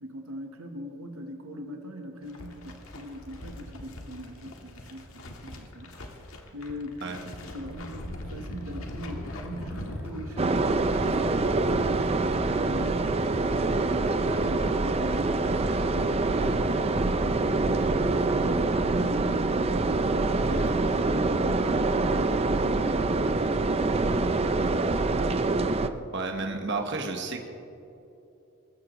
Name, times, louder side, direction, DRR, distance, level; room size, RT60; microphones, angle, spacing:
voice 1, 0.0-6.0 6.5-16.5 17.2-24.3, equal, 85° right, 4 dB, 1.2 m, -42 dB
sound 1, 2.2-20.7, left 1 dB, 80° left, 1.6 m, -42 dB
sound 2, 9.1-10.8 11.0-14.8, equal, 10° right, 1.8 m, -48 dB
sound 3, 10.4-25.9, right 3 dB, 30° right, 0.5 m, -25 dB
voice 2, 26.1-27.5, right 3 dB, 55° right, 4 dB, 1.3 m, -31 dB
21.0 x 14.0 x 3.1 m, 2.9 s
head